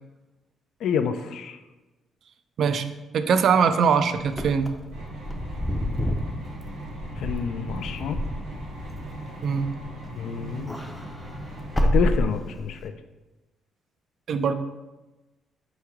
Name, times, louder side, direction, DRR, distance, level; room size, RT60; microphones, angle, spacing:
voice 1, 0.8-1.6 7.2-8.2 10.2-10.8 11.8-12.9, left 7 dB, 75° left, 9 dB, 0.3 m, -28 dB
voice 2, 3.1-4.7 9.4-9.7 14.3-14.5, right 6 dB, 65° right, 9 dB, 0.3 m, -21 dB
Wind / Car, 4.3-10.1 10.4-12.9, equal, 10° left, 0.5 m, -29 dB
sound 1, 4.9-11.8, right 1 dB, 90° right, 1.4 m, -39 dB
4.5 x 3.1 x 3.6 m, 1.1 s
cardioid pair, 90°, 0 cm